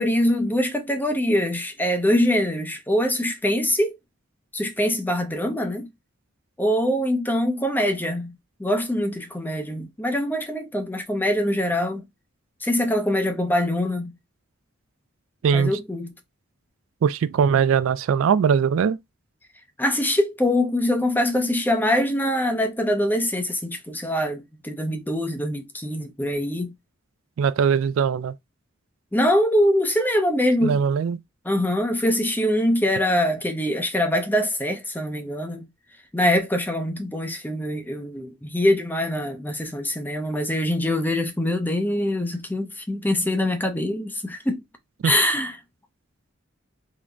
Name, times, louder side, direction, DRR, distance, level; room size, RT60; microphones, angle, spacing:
voice 1, 0.0-4.0 4.5-5.9 6.6-12.0 12.6-14.1 15.5-16.1 19.8-26.7 29.1-30.8 31.4-35.7 36.1-44.6 45.0-45.6, left 1 dB, 10° left, 0.5 m, -23 dB
voice 2, 17.0-19.0 27.4-28.3 30.6-31.2 45.0-45.1, right 7 dB, 70° right, 0.3 m, -20 dB
3.8 x 2.0 x 3.4 m
head